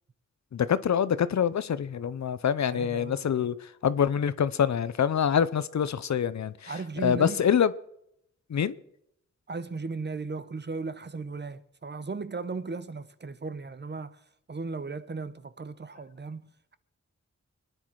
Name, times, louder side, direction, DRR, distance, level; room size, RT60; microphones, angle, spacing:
voice 1, 0.5-6.7 7.0-7.7 8.5-8.8, left 8 dB, 70° left, 0.7 m, -25 dB
voice 2, 2.7-3.5 6.7-7.5 9.5-16.8, right 4 dB, 35° right, 0.9 m, -37 dB
26.0 x 10.0 x 4.7 m
wide cardioid pair, 105°, 29 cm